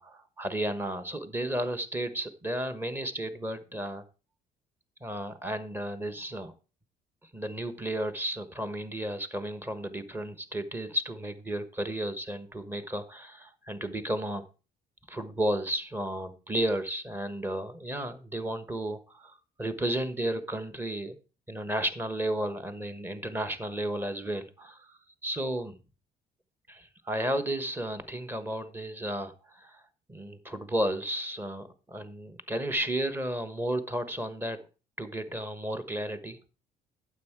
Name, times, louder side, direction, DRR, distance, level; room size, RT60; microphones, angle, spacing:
voice 1, 0.0-4.0 5.0-6.5 7.3-14.4 15.1-21.2 21.5-25.8 26.7-29.8 30.1-34.6 35.0-36.4, right 1 dB, 10° right, 1.1 m, -33 dB
9.4 x 7.3 x 4.6 m
cardioid pair, 110°, 17 cm